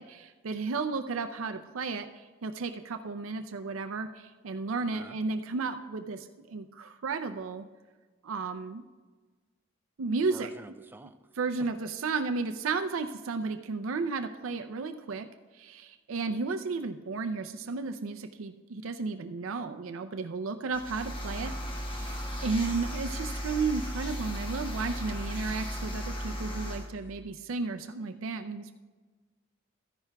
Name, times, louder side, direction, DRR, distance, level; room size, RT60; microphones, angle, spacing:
voice 1, 0.0-7.7 8.2-8.8 10.0-10.5 11.4-15.3 15.5-21.5 21.8-22.1 22.4-28.7, right 4 dB, 85° right, 8 dB, 0.5 m, -33 dB
voice 2, 10.3-11.2, right 2 dB, 10° right, 8 dB, 0.3 m, -47 dB
sound 1, 20.7-26.9, equal, 25° left, 1.1 m, -36 dB
14.0 x 10.5 x 2.3 m, 1.4 s
head